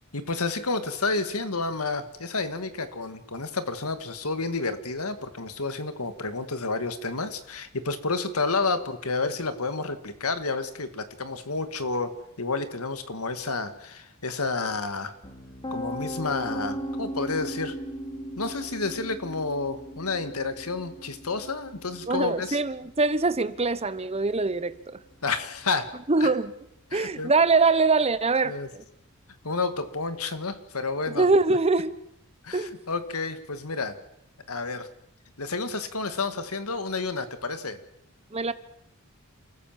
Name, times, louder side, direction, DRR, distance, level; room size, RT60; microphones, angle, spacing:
voice 1, 0.1-15.1 15.7-17.8 18.4-22.6 25.2-25.9 26.2-26.3 26.9-27.3 28.5-28.7 29.4-31.3 32.4-34.0 34.5-34.9 35.4-37.8, left 3 dB, 80° left, 11 dB, 1.9 m, -30 dB
Piano, 15.2-27.2, equal, 20° left, 2.6 m, -39 dB
voice 2, 22.1-25.0 26.1-26.5 26.9-28.8 31.1-31.9 32.5-32.7 38.3-38.5, right 3 dB, 30° right, 15 dB, 0.9 m, -23 dB
29.0 x 14.5 x 7.4 m, 0.81 s
head